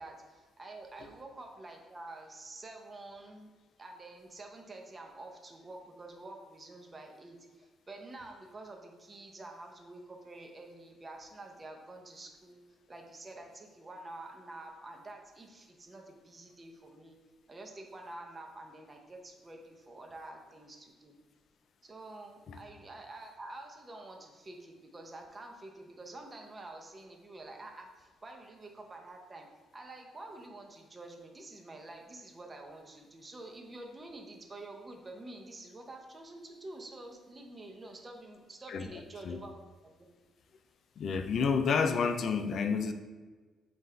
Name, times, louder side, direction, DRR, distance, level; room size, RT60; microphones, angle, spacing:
voice 1, 0.0-3.5 3.8-17.2 17.5-21.2 21.8-29.5 29.7-39.5 39.8-39.9, right 2 dB, 30° right, 2 dB, 0.7 m, -48 dB
voice 2, 38.7-39.4 41.0-42.9, left 5 dB, 60° left, 8 dB, 0.4 m, -30 dB
5.5 x 2.5 x 3.3 m, 1.4 s
cardioid pair, 90°, 0 cm